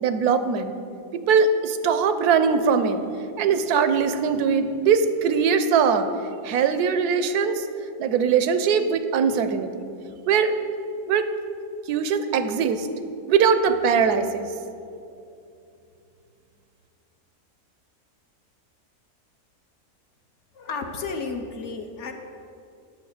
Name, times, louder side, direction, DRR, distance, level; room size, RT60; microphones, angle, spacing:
voice 1, 0.0-0.7 1.1-3.0 3.4-6.1 6.4-7.7 8.0-9.8 10.3-10.5 11.1-11.3 11.9-12.9 13.3-14.5, right 6 dB, 85° right, 10 dB, 1.2 m, -21 dB
voice 2, 20.5-22.1, left 4 dB, 60° left, 4 dB, 0.9 m, -32 dB
8.6 x 7.2 x 6.5 m, 2.6 s
omnidirectional pair, 1.6 m